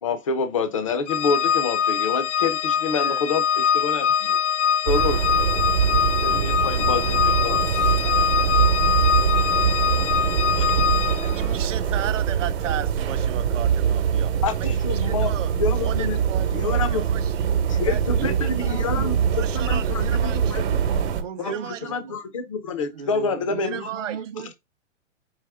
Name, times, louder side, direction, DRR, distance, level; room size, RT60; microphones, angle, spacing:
voice 1, 0.0-4.4 4.9-5.2 6.2-7.9 10.6-10.8 14.4-16.2 16.5-17.1 17.7-19.2 19.5-20.8 21.4-23.9, left 4 dB, 30° left, 0.4 m, -28 dB
Organ, 1.1-11.5, left 8 dB, 70° left, 0.7 m, -23 dB
voice 2, 2.9-3.3 6.8-7.7 8.0-8.6 9.5-9.7 11.2-17.5 17.9-18.7 19.3-20.5 21.4-21.8 23.6-24.2, right 11 dB, 85° right, 0.7 m, -36 dB
sound 1, 4.9-21.2, right 8 dB, 55° right, 1.0 m, -23 dB
voice 3, 18.1-19.1 20.8-22.2 22.9-24.5, right 7 dB, 40° right, 0.6 m, -36 dB
4.8 x 2.9 x 3.3 m
hypercardioid pair, 170°, 37 cm